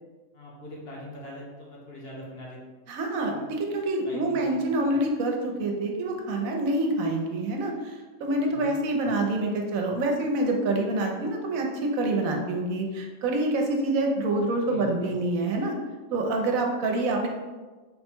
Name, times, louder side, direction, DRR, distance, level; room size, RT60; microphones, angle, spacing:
voice 1, 0.3-2.6 3.2-3.5 4.0-4.6 8.3-8.7 14.4-15.2, left 1 dB, 55° left, -3 dB, 0.9 m, -42 dB
voice 2, 2.9-15.7 16.1-17.3, right 2 dB, 80° right, 2 dB, 1.0 m, -26 dB
3.6 x 2.2 x 4.3 m, 1.3 s
omnidirectional pair, 1.5 m